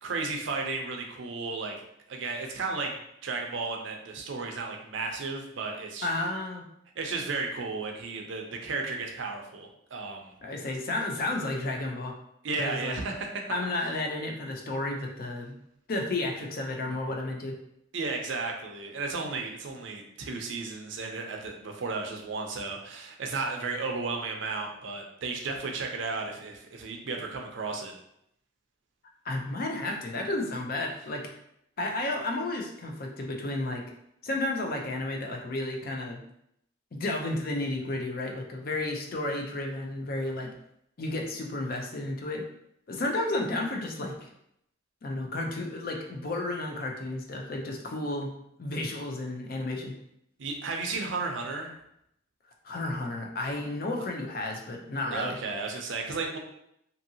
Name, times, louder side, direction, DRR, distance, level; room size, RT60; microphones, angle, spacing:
voice 1, 0.0-1.8 2.1-6.1 7.0-10.3 12.4-13.6 17.9-27.9 50.4-51.7 55.1-56.4, right 3 dB, 65° right, 2 dB, 0.5 m, -34 dB
voice 2, 6.0-6.7 10.4-12.1 12.6-13.0 13.5-15.6 15.9-17.6 29.2-31.2 31.8-33.8 34.2-36.2 36.9-40.5 41.0-42.4 42.9-44.3 45.0-48.3 48.6-50.0 52.6-55.4, left 2 dB, 45° left, 1 dB, 0.4 m, -32 dB
2.7 x 2.6 x 2.7 m, 0.75 s
head